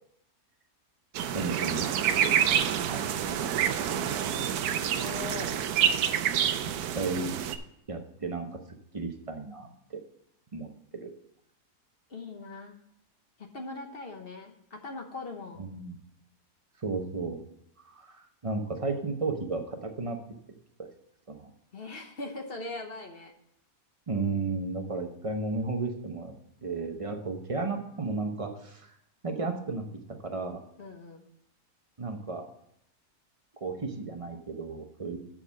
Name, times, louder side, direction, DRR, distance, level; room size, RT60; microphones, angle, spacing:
sound 1, 1.1-7.6, right 9 dB, 75° right, 1.1 m, -27 dB
voice 1, 1.3-2.4 2.8-4.3 6.9-7.3 7.9-8.5 8.9-9.7 10.5-11.1 15.6-16.0 16.8-17.4 17.8-20.2 20.8-20.9 21.3-21.5 24.1-26.3 26.6-29.0 29.2-29.8 30.2-30.6 32.0-32.4 33.6-35.2, right 3 dB, 30° right, 4 dB, 0.7 m, -34 dB
voice 2, 4.8-5.5 12.1-12.8 13.4-15.7 21.7-23.3 30.8-31.2, left 3 dB, 40° left, 4 dB, 1.0 m, -40 dB
7.3 x 5.5 x 6.9 m, 0.77 s
omnidirectional pair, 1.7 m